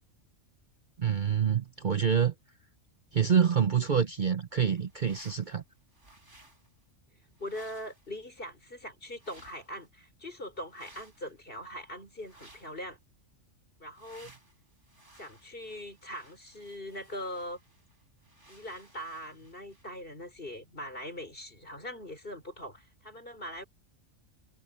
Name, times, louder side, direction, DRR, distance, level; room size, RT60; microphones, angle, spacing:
voice 1, 1.0-2.3 3.1-5.6, right 7 dB, 45° right, 0.8 m, -26 dB
sound 1, 4.5-5.6 5.9-6.7 7.4-8.2 9.1-9.9 10.7-11.3 12.1-12.8 13.9-20.0, right 2 dB, 65° right, 6.7 m, -58 dB
voice 2, 7.4-13.0 13.8-14.3 15.2-17.6 18.5-23.6, equal, 45° left, 5.9 m, -41 dB
omnidirectional pair, 1.3 m